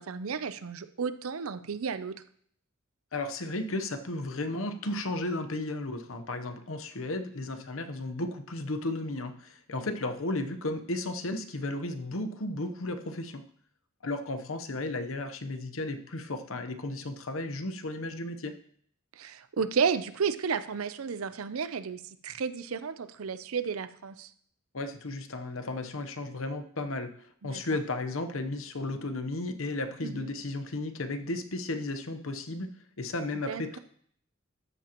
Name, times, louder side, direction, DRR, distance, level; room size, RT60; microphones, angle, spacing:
voice 1, 0.0-2.2 19.2-24.3 27.4-27.8 30.0-30.3 33.3-33.8, right 6 dB, 90° right, 12 dB, 0.6 m, -32 dB
voice 2, 3.1-13.4 14.0-18.5 24.7-27.2 27.4-32.7 33.0-33.8, left 2 dB, 75° left, 8 dB, 0.9 m, -34 dB
13.0 x 7.7 x 3.0 m, 0.62 s
head